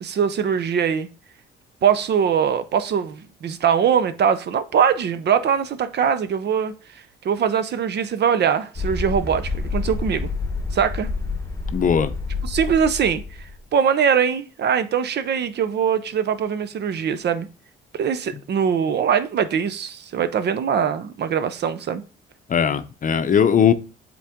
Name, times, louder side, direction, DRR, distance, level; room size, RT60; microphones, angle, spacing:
voice 1, 0.0-1.1 1.8-6.7 7.2-10.3 10.7-11.1 12.4-13.2 13.7-17.5 17.9-22.0, right 7 dB, 60° right, 0.7 m, -22 dB
sound 1, 8.8-13.6, left 3 dB, 15° left, 1.1 m, -28 dB
voice 2, 11.7-12.1 22.5-23.7, left 7 dB, 40° left, 0.6 m, -18 dB
7.3 x 3.9 x 3.6 m
cardioid pair, 90°, 20 cm